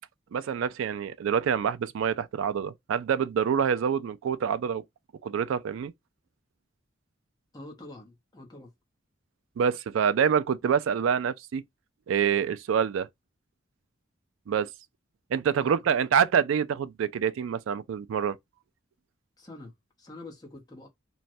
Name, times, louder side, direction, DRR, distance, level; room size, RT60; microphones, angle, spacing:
voice 1, 0.3-4.8 5.2-5.9 9.6-11.6 12.1-13.1 14.5-14.7 15.3-18.4, right 7 dB, 85° right, 0.3 m, -26 dB
voice 2, 7.5-8.7 15.6-16.0 19.4-20.9, left 2 dB, 20° left, 0.8 m, -46 dB
3.1 x 2.1 x 2.6 m
head